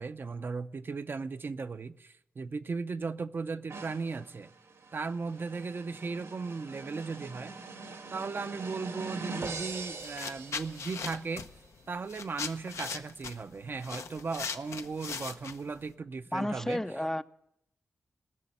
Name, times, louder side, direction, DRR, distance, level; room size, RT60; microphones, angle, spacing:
voice 1, 0.0-4.5 4.9-7.5 8.1-11.5 11.9-16.8, right 4 dB, 50° right, 0.5 m, -37 dB
sound 1, 3.7-11.3, right 4 dB, 85° right, 2.2 m, -43 dB
sound 2, 9.6-9.7 10.0-15.9, left 5 dB, 85° left, 0.8 m, -39 dB
voice 2, 16.3-17.2, left 1 dB, 10° left, 0.5 m, -31 dB
18.5 x 6.8 x 9.6 m
wide cardioid pair, 105°, 5 cm